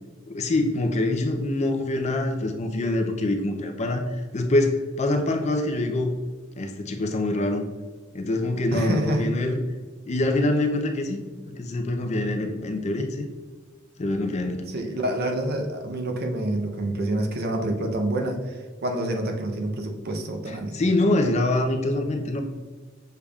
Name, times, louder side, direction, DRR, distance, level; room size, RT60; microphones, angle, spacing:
voice 1, 0.3-6.1 6.6-7.6 8.1-9.6 10.0-11.2 11.5-13.3 14.0-14.7 20.5-22.4, left 2 dB, 35° left, 4 dB, 0.5 m, -25 dB
voice 2, 8.7-9.2 14.7-20.7, right 1 dB, 50° right, 3 dB, 0.6 m, -27 dB
6.7 x 3.4 x 2.3 m, 1.4 s
head